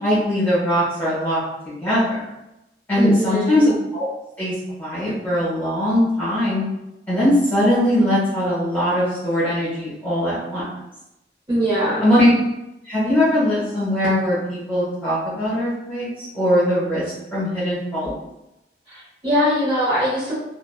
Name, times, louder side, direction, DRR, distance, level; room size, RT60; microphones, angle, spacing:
voice 1, 0.0-2.2 2.9-4.1 4.4-6.7 7.1-10.6 12.0-12.3 12.8-17.0 17.3-18.1, left 1 dB, 10° left, -11 dB, 1.2 m, -20 dB
voice 2, 3.0-3.6 11.5-12.0 18.9-20.3, equal, 30° right, -10 dB, 1.0 m, -21 dB
2.9 x 2.2 x 2.3 m, 0.90 s
head